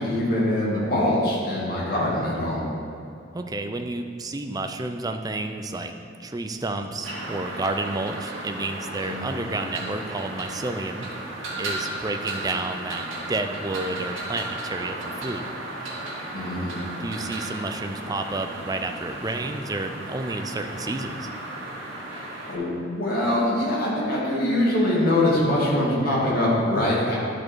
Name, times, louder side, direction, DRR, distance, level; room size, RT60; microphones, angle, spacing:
voice 1, 0.0-2.6 9.0-9.4 16.3-16.8 22.5-27.2, left 1 dB, 50° left, -6 dB, 2.3 m, -23 dB
voice 2, 3.3-11.0 11.6-15.4 17.0-21.3, right 2 dB, 20° right, 6 dB, 0.4 m, -30 dB
sound 1, 7.0-22.6, right 2 dB, 80° right, 2.1 m, -35 dB
11.5 x 5.0 x 4.6 m, 2.4 s
head